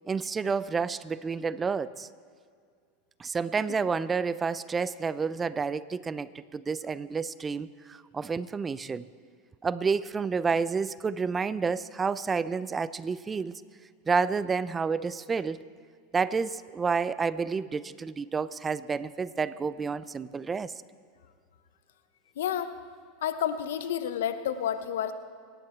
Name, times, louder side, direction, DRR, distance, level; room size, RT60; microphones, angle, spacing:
voice 1, 0.1-2.1 3.2-9.1 9.6-13.6 14.1-15.6 16.1-20.7, right 5 dB, 20° right, 17 dB, 0.4 m, -30 dB
voice 2, 22.4-22.7 23.2-25.1, left 9 dB, 80° left, 11 dB, 0.9 m, -30 dB
24.5 x 10.5 x 4.5 m, 2.1 s
hypercardioid pair, 105°, 0 cm